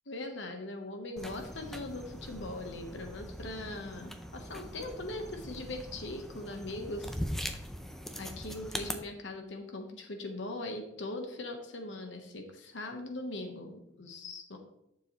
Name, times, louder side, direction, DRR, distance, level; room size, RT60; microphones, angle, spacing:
voice 1, 0.1-7.7 8.2-14.6, left 2 dB, 75° left, 4 dB, 1.1 m, -40 dB
sound 1, 1.2-8.9, equal, ahead, 0.5 m, -41 dB
10.5 x 6.8 x 3.1 m, 0.83 s
head